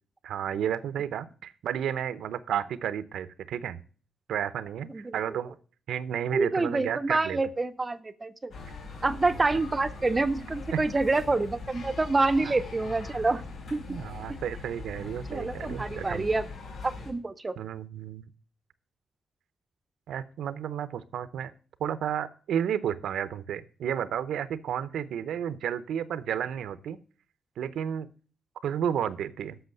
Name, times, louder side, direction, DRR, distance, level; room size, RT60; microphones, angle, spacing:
voice 1, 0.2-3.8 4.3-5.5 5.9-7.4 10.7-10.8 12.4-12.5 13.9-16.3 17.6-18.2 20.1-21.5 21.8-27.0 27.6-28.1 28.6-29.6, right 9 dB, 85° right, 15 dB, 0.7 m, -32 dB
voice 2, 6.3-8.5 9.0-13.4 13.7-13.8 15.3-16.4 16.8-17.5, right 3 dB, 20° right, 12 dB, 0.5 m, -27 dB
sound 1, 8.5-17.1, left 3 dB, 70° left, 4.3 m, -41 dB
8.0 x 6.4 x 7.7 m, 0.41 s
wide cardioid pair, 155°, 0 cm